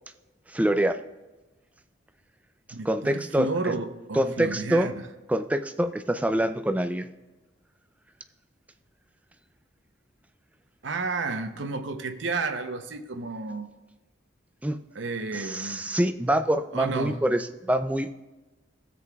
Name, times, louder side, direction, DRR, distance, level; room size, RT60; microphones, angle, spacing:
voice 1, 0.5-1.0 2.8-3.7 4.2-4.9 5.3-7.1 14.6-14.8 15.3-18.1, right 1 dB, 10° right, 8 dB, 0.3 m, -25 dB
voice 2, 2.7-5.0 10.8-13.7 14.9-15.8 16.7-17.2, right 3 dB, 80° right, 7 dB, 0.7 m, -31 dB
15.0 x 7.7 x 2.3 m, 1.2 s
head